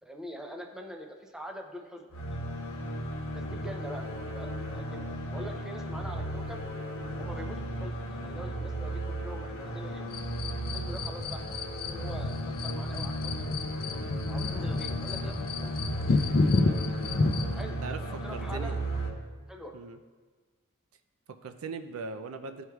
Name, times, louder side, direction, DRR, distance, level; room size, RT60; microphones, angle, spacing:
voice 1, 0.0-2.4 3.3-4.1 4.3-6.6 7.2-10.1 10.7-13.5 14.3-15.7 16.3-16.4 17.5-18.8 19.5-19.7, equal, 5° right, 2 dB, 0.5 m, -44 dB
sound 1, 2.1-19.1, right 1 dB, 65° left, 1.1 m, -35 dB
sound 2, 10.1-17.6, left 3 dB, 45° left, 0.5 m, -30 dB
voice 2, 17.8-18.8 19.7-20.0 21.3-22.6, right 4 dB, 70° right, 8 dB, 0.4 m, -40 dB
13.0 x 4.6 x 2.3 m, 1.4 s
head